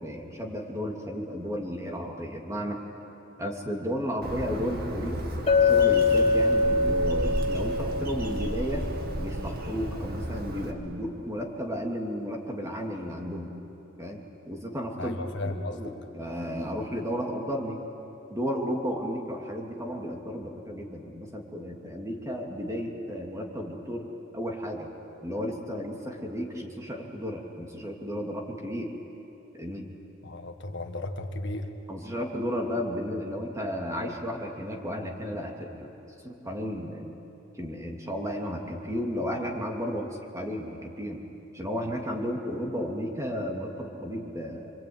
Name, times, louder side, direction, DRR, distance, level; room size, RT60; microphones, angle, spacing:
voice 1, 0.0-2.8 3.4-5.2 5.6-8.8 9.2-13.5 14.0-14.2 14.5-17.8 18.3-24.1 24.3-24.9 25.2-28.9 29.6-29.9 31.9-35.9 36.2-37.1 37.6-40.1 40.3-41.2 41.5-44.7, equal, 15° right, 0 dB, 3.0 m, -33 dB
Bird, 4.2-10.7, equal, 50° right, 2.2 m, -33 dB
Chink clink, 5.5-9.5, left 3 dB, 35° left, 3.0 m, -24 dB
voice 2, 15.0-15.8 30.2-31.7, left 2 dB, 60° left, 5 dB, 1.6 m, -34 dB
27.0 x 24.5 x 9.1 m, 2.9 s
head